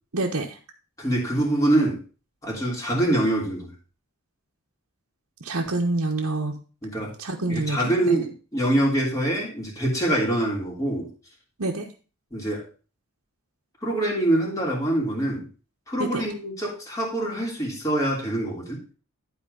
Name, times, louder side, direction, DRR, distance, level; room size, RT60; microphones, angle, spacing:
voice 1, 0.1-0.6 5.4-6.6 7.2-8.2 11.6-11.9 16.0-16.2, right 2 dB, 80° right, -2 dB, 1.2 m, -27 dB
voice 2, 1.0-2.0 2.4-3.7 6.8-7.1 7.5-11.1 12.3-12.6 13.8-15.5 15.9-18.8, right 1 dB, 15° left, -3 dB, 3.1 m, -24 dB
12.0 x 4.5 x 5.3 m, 0.35 s
head